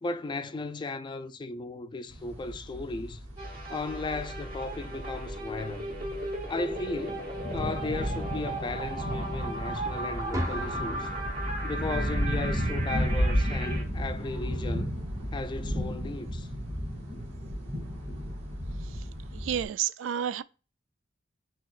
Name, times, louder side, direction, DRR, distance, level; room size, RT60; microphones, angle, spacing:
voice 1, 0.0-3.2 3.7-5.9 6.5-11.1 11.6-15.0 15.3-16.5, left 3 dB, 25° left, 0.3 m, -36 dB
sound 1, 2.1-19.7, equal, 35° right, 2.1 m, -33 dB
sound 2, 3.4-13.8, right 2 dB, 50° right, 1.3 m, -37 dB
sound 3, 10.3-14.3, equal, 20° right, 0.7 m, -38 dB
voice 2, 19.3-20.4, right 9 dB, 85° right, 0.3 m, -30 dB
5.7 x 2.8 x 2.4 m
head